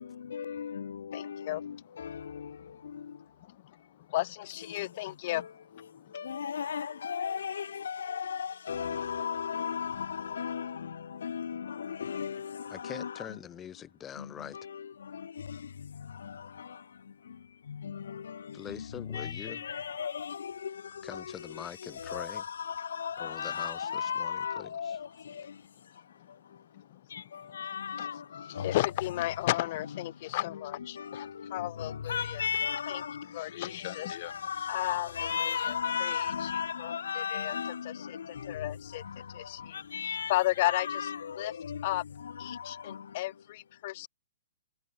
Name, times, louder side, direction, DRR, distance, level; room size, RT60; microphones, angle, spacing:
voice 1, 0.3-1.7 2.0-2.1 5.3-5.4 6.1-10.8 11.2-13.1 17.9-18.2 19.1-20.7 21.1-21.2 22.0-25.0 27.6-28.2 28.6-28.7 31.1-31.2 32.1-33.2 34.1-37.9 39.9-40.3 40.6-41.8 42.5-42.6, left 7 dB, 80° left, 1.1 m, -35 dB
voice 2, 1.1-1.6 4.1-5.5 28.0-28.1 28.6-32.4 32.9-33.0 33.3-34.3 34.7-35.3 36.0-36.2 36.8-37.5 38.5-39.0 39.3-39.8 40.3-41.1 41.4-41.5 41.8-42.0 42.4-44.1, left 17 dB, 40° left, 0.9 m, -33 dB
voice 3, 12.7-14.6 18.5-19.7 21.0-22.4 23.2-25.0, left 9 dB, 15° left, 2.6 m, -44 dB
hypercardioid pair, 160°, 0 cm